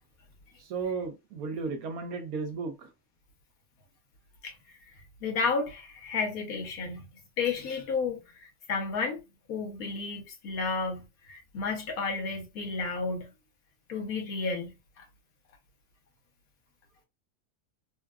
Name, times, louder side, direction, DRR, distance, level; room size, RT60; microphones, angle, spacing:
voice 1, 0.6-2.9, right 4 dB, 75° right, 1.2 m, -34 dB
voice 2, 5.2-7.1 7.4-9.2 9.5-13.3 13.9-15.0, left 4 dB, 70° left, 1.3 m, -32 dB
3.7 x 2.3 x 2.3 m
omnidirectional pair, 1.6 m